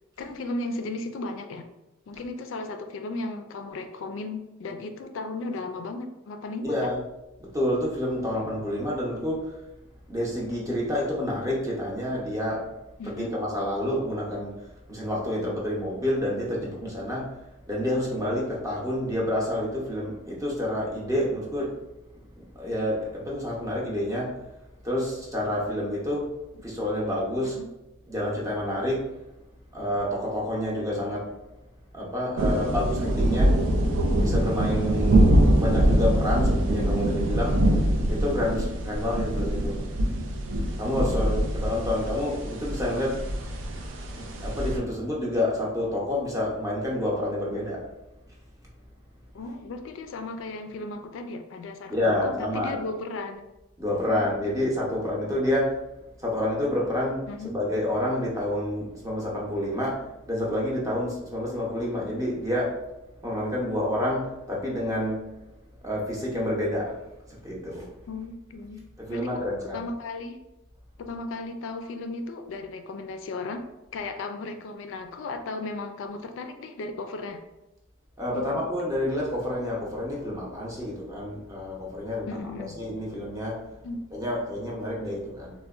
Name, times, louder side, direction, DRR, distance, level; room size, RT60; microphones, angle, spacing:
voice 1, 0.2-1.7 2.1-6.9 13.0-13.3 26.6-26.7 27.4-27.7 41.3-41.4 49.3-53.4 54.1-54.2 54.5-55.0 57.3-57.5 68.1-68.8 69.1-70.4 71.0-73.7 73.9-77.4 78.3-78.6 82.3-82.8 83.8-84.0, left 3 dB, 80° left, 6 dB, 0.3 m, -35 dB
voice 2, 6.6-7.0 7.4-9.6 10.1-12.7 13.0-21.7 22.4-24.4 24.8-26.3 26.6-27.6 28.1-29.0 29.7-31.3 31.9-33.6 34.2-37.6 38.1-39.8 40.8-43.3 44.2-47.9 51.9-52.8 53.8-55.8 56.2-57.2 57.5-62.8 63.2-65.3 65.8-66.9 67.3-67.9 69.0-69.8 78.2-82.4 82.7-83.6 84.1-85.5, left 1 dB, 15° right, -4 dB, 0.6 m, -28 dB
sound 1, 32.4-44.8, right 1 dB, 85° right, 0.4 m, -24 dB
3.7 x 2.1 x 2.3 m, 0.96 s
head